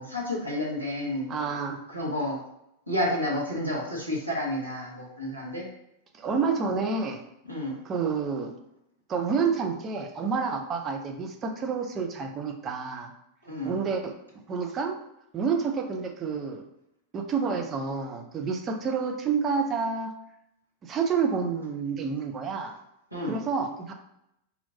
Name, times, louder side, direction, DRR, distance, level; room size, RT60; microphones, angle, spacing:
voice 1, 0.0-1.3 1.9-2.4 2.9-5.7 7.5-7.8 13.4-13.8 23.1-23.4, left 1 dB, 85° right, -3 dB, 1.1 m, -30 dB
voice 2, 1.3-1.8 6.1-7.2 7.8-8.5 9.1-13.1 13.6-14.1 14.5-14.9 15.3-16.6 17.1-20.1 20.8-22.7 23.3-23.9, right 5 dB, 25° right, 4 dB, 0.6 m, -29 dB
4.3 x 2.7 x 2.7 m, 0.82 s
figure-of-eight pair, 90°, 0 cm